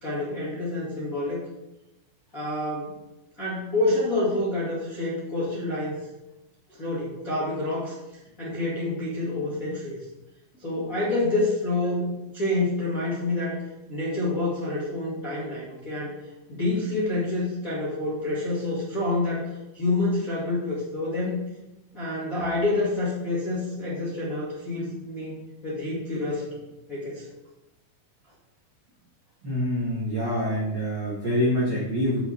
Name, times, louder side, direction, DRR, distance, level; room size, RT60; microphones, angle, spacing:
voice 1, 0.0-1.4 2.3-2.9 3.4-6.0 6.8-7.9 8.4-10.0 10.6-13.6 13.9-16.2 16.5-19.5 19.7-21.4 21.9-26.6 26.9-27.3, left 2 dB, 35° left, -8 dB, 1.3 m, -28 dB
voice 2, 29.4-32.2, equal, 50° right, -6 dB, 1.2 m, -26 dB
8.0 x 7.0 x 4.5 m, 1.0 s
omnidirectional pair, 5.2 m